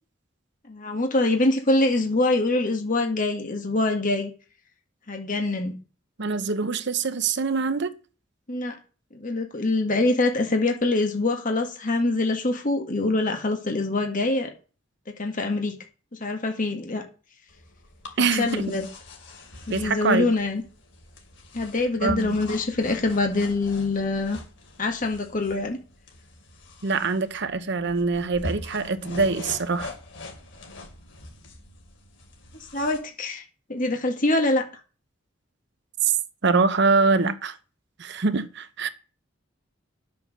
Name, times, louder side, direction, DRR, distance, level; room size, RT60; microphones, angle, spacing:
voice 1, 0.7-4.3 5.1-5.8 8.5-8.8 9.1-14.5 15.2-15.7 16.2-17.0 18.4-18.9 19.7-20.6 21.5-24.4 24.8-25.8 32.7-33.4 33.7-34.6, left 2 dB, 45° left, 1.9 m, -24 dB
voice 2, 6.2-7.9 18.2-18.7 19.7-20.3 22.0-22.4 26.8-29.9 36.0-36.1 36.4-37.6 38.0-38.9, right 4 dB, 65° right, 0.9 m, -24 dB
sound 1, 17.5-33.0, left 1 dB, 70° left, 2.9 m, -42 dB
10.5 x 7.0 x 6.6 m
head